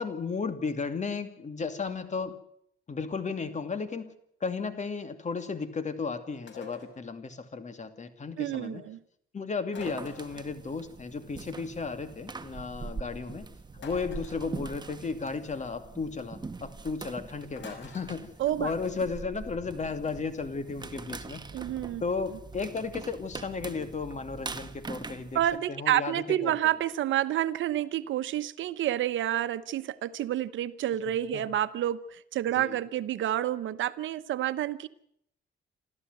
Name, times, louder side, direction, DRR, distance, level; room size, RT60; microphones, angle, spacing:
voice 1, 0.0-2.4 2.9-4.1 4.4-8.8 9.3-13.5 13.8-21.4 22.0-25.4 25.7-26.5 31.3-31.5 32.6-32.8, left 4 dB, 35° left, 10 dB, 2.5 m, -34 dB
sound 1, 6.5-7.0 9.7-10.5 13.8-14.5 17.6-18.1, left 4 dB, 65° left, 5.5 m, -46 dB
voice 2, 8.4-9.0 18.4-18.7 21.5-22.0 25.3-34.9, right 12 dB, 75° right, 13 dB, 1.0 m, -29 dB
sound 2, 9.8-25.6, right 4 dB, 20° right, 1.4 m, -43 dB
28.0 x 13.5 x 7.9 m, 0.71 s
cardioid pair, 90°, 20 cm